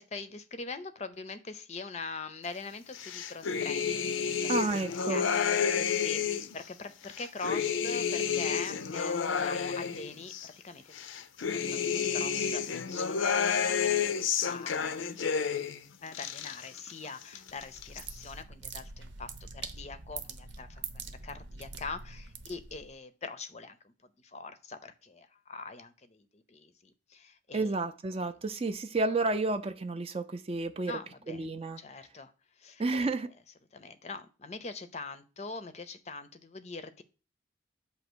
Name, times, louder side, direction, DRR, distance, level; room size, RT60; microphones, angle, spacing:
voice 1, 0.0-4.7 5.1-5.2 5.8-10.8 11.5-13.4 13.6-14.1 14.4-15.2 16.0-20.8 21.2-23.8 24.3-27.7 30.9-31.4 31.8-32.3 32.6-33.1 33.7-37.0, left 4 dB, 35° left, 0.5 m, -43 dB
sound 1, 2.9-6.6 7.0-10.5 10.9-15.8 16.1-16.9 17.2-18.0, left 7 dB, 80° left, 0.5 m, -30 dB
voice 2, 4.5-5.3 27.5-31.0 31.3-31.8 32.8-33.3, right 3 dB, 30° right, 0.4 m, -31 dB
sound 2, 17.5-22.9, right 5 dB, 65° right, 0.8 m, -44 dB
7.8 x 2.9 x 6.1 m
head